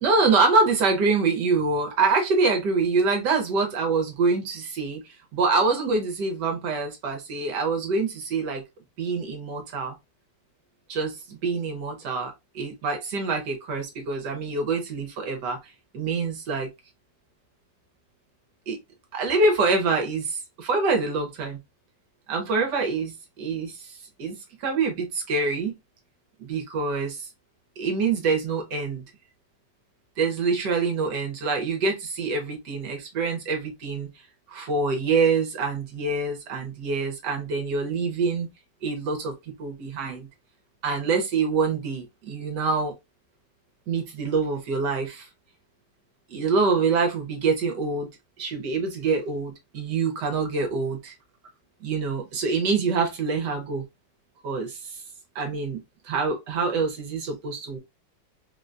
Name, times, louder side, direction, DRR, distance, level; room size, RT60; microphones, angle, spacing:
voice 1, 0.0-5.0 5.3-8.6 9.0-9.9 10.9-15.6 15.9-16.7 18.7-18.8 19.1-21.6 22.3-23.9 24.2-25.7 26.4-27.3 27.8-29.0 30.2-34.1 34.5-38.5 38.8-39.3 39.6-40.3 40.8-42.9 43.9-45.3 46.3-48.1 48.4-51.1 51.8-53.8 54.4-55.0 55.3-57.8, right 4 dB, 65° right, 1.3 m, -25 dB
3.7 x 2.2 x 2.5 m
omnidirectional pair, 2.1 m